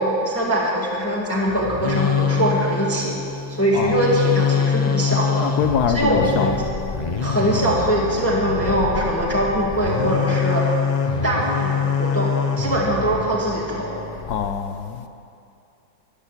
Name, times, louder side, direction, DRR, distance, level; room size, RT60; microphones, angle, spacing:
voice 1, 0.0-3.1 3.5-5.5 5.9-6.6 7.2-10.6 11.2-14.0, right 1 dB, 5° left, 1.9 m, -22 dB
sound 1, 1.4-14.5, left 6 dB, 35° left, 0.7 m, -25 dB
voice 2, 3.7-4.1 5.1-6.7 14.3-15.1, left 8 dB, 65° left, 1.0 m, -25 dB
15.0 x 12.0 x 7.5 m
omnidirectional pair, 2.1 m